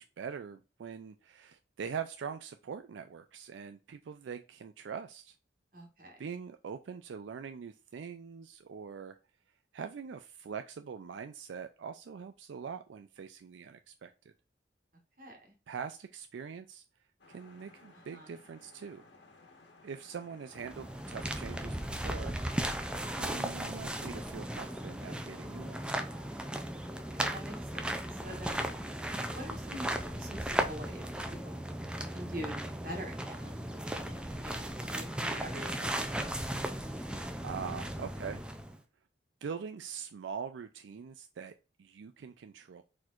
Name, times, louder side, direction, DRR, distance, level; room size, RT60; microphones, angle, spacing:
voice 1, 0.0-5.4 6.2-9.2 9.7-14.1 15.7-16.8 17.3-19.1 19.8-22.4 23.2-26.0 37.1-38.4 39.4-41.5 41.8-42.8, right 6 dB, 85° right, 8 dB, 0.4 m, -43 dB
voice 2, 5.7-6.2 15.2-15.4 17.9-18.3 27.1-27.9 28.2-28.7 29.3-31.1 31.4-31.6 32.1-32.5 32.8-36.1, equal, 50° right, 1 dB, 1.5 m, -45 dB
sound 1, 17.2-27.2, left 3 dB, 80° left, 1.4 m, -59 dB
sound 2, 20.5-38.8, right 1 dB, 5° right, 0.4 m, -36 dB
4.4 x 4.2 x 2.5 m, 0.32 s
head